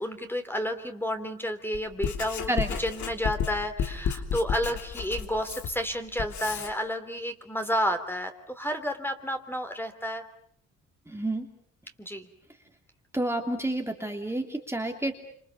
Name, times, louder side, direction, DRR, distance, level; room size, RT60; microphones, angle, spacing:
voice 1, 0.0-2.5 2.8-10.2 12.0-12.3, equal, 5° left, 7 dB, 3.2 m, -31 dB
Writing, 1.7-6.7, left 7 dB, 70° left, 3.2 m, -32 dB
voice 2, 11.1-11.5 13.1-15.1, right 1 dB, 10° right, 3 dB, 2.9 m, -29 dB
28.0 x 27.0 x 7.1 m, 0.63 s
cardioid pair, 90°, 30 cm